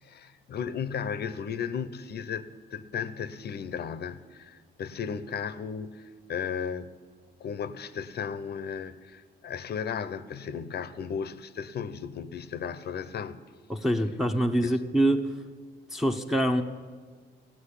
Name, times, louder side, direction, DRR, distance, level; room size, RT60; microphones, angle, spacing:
voice 1, 0.0-6.9 7.4-13.4 14.6-14.7, left 7 dB, 55° left, 0.7 m, -35 dB
voice 2, 13.7-15.4 15.9-16.6, right 1 dB, ahead, 0.8 m, -25 dB
15.5 x 6.2 x 9.9 m
cardioid pair, 90°, 20 cm